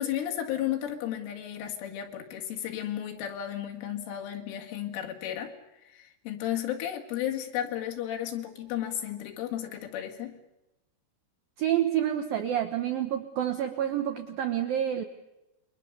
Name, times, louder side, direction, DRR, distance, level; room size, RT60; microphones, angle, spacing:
voice 1, 0.0-5.5 5.9-10.4, left 11 dB, 80° left, 3 dB, 4.6 m, -33 dB
voice 2, 11.6-15.1, right 10 dB, 80° right, 6 dB, 2.1 m, -28 dB
28.0 x 22.5 x 7.0 m, 0.94 s
omnidirectional pair, 5.7 m